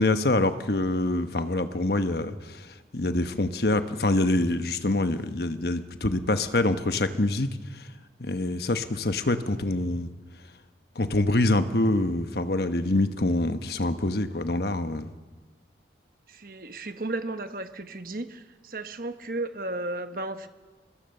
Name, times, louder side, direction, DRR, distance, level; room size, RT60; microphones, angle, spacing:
voice 1, 0.0-2.6 2.9-7.5 8.2-10.1 11.0-15.1, left 2 dB, 60° left, 9 dB, 1.1 m, -25 dB
voice 2, 16.3-20.5, right 2 dB, 50° right, 9 dB, 1.2 m, -34 dB
24.5 x 20.5 x 6.7 m, 1.4 s
head